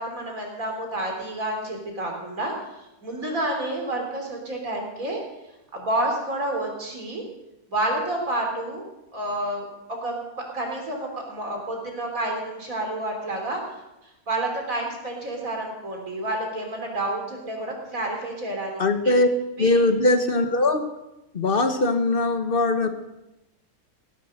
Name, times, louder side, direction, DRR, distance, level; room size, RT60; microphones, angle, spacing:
voice 1, 0.0-2.5 3.0-5.2 5.7-7.2 7.7-8.8 9.1-13.6 14.3-19.1 19.6-19.8, right 1 dB, 60° right, 1 dB, 4.0 m, -29 dB
voice 2, 18.8-19.3 19.6-20.9 21.3-22.9, left 2 dB, 40° left, 8 dB, 1.3 m, -21 dB
17.0 x 10.5 x 6.5 m, 0.93 s
omnidirectional pair, 1.6 m